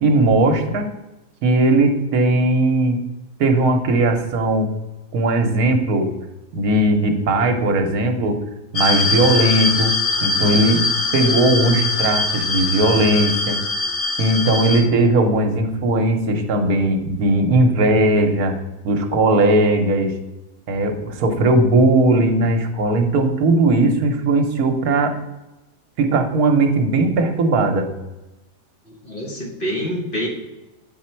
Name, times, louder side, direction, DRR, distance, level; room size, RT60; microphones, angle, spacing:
voice 1, 0.0-0.9 1.4-3.0 3.4-4.7 5.1-6.1 6.5-8.4 8.7-10.9 11.1-13.6 14.2-18.5 18.8-20.1 20.7-25.1 26.0-27.9, right 2 dB, 70° right, 5 dB, 1.3 m, -18 dB
sound 1, 8.8-14.8, left 3 dB, 60° left, 1.4 m, -22 dB
voice 2, 28.9-30.3, equal, 35° left, -1 dB, 1.4 m, -26 dB
8.0 x 4.2 x 4.4 m, 1.0 s
omnidirectional pair, 1.7 m